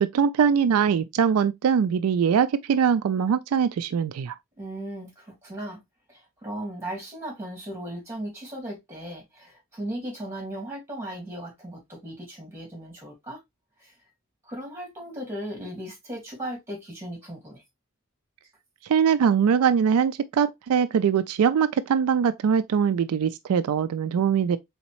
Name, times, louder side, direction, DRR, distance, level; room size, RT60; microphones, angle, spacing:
voice 1, 0.0-4.3 18.9-24.6, right 7 dB, 85° right, 0.3 m, -22 dB
voice 2, 4.6-5.8 6.1-13.4 13.8-14.0 14.4-17.6, right 1 dB, 10° right, 2.4 m, -37 dB
4.1 x 3.5 x 2.9 m
head